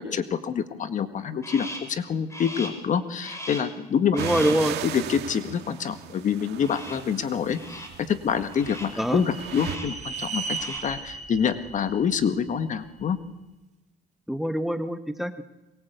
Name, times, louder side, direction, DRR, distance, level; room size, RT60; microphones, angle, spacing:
voice 1, 0.0-4.2 4.8-7.6 8.1-13.2, left 7 dB, 50° left, 10 dB, 1.8 m, -26 dB
Crow, 1.4-2.0 2.3-2.9 3.2-3.8 4.1-4.7 6.6-7.1 7.5-8.0 8.5-9.0 9.5-10.0 10.3-11.0, equal, 15° left, 4.8 m, -39 dB
voice 2, 4.1-4.8 9.0-9.2 14.3-15.4, equal, ahead, 10 dB, 1.3 m, -25 dB
sound 1, 4.2-9.8, right 11 dB, 75° right, 2.0 m, -37 dB
sound 2, 7.9-13.1, right 4 dB, 45° right, 2.2 m, -37 dB
23.0 x 22.0 x 8.3 m, 1.0 s
cardioid pair, 110°, 17 cm